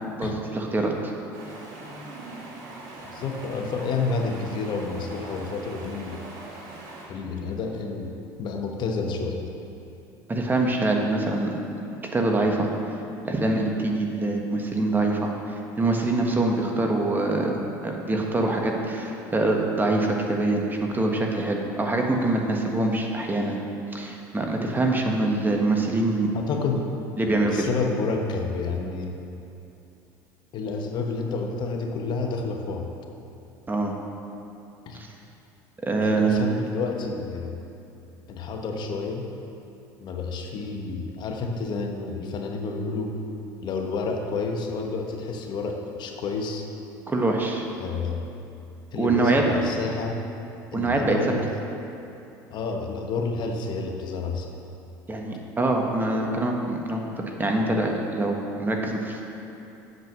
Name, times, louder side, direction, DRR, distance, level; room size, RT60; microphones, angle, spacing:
voice 1, 0.2-1.1 10.3-11.6 12.1-12.7 13.2-17.6 17.8-23.6 23.9-26.3 27.2-27.5 33.7-33.9 34.9-35.1 35.8-36.5 47.1-47.6 48.9-49.4 50.7-51.2 55.1-57.0 57.4-59.2, right 2 dB, 20° right, 1 dB, 1.4 m, -24 dB
Stream, 1.3-7.1, right 2 dB, 80° right, 2.2 m, -41 dB
voice 2, 3.0-6.3 7.1-8.1 8.4-9.4 26.3-26.9 27.3-29.2 30.5-32.9 34.9-35.0 36.0-37.6 38.3-39.3 40.0-43.2 43.6-46.7 47.8-48.3 48.9-50.2 50.7-51.5 52.5-54.6, left 4 dB, 55° left, 2 dB, 1.1 m, -29 dB
8.1 x 7.5 x 6.2 m, 2.8 s
supercardioid pair, 90°, 9 cm